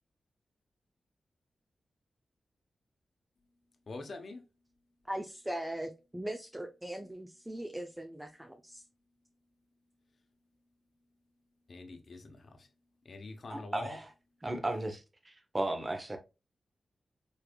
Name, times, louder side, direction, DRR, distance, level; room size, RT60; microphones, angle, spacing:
voice 1, 3.9-4.4 11.7-12.7 13.0-14.0, left 3 dB, 60° left, 0.9 m, -45 dB
voice 2, 5.1-8.8, right 1 dB, 10° right, 0.6 m, -40 dB
voice 3, 13.5-14.1 14.4-16.2, right 2 dB, 30° right, 1.1 m, -35 dB
4.6 x 3.3 x 2.3 m
cardioid pair, 45°, 0 cm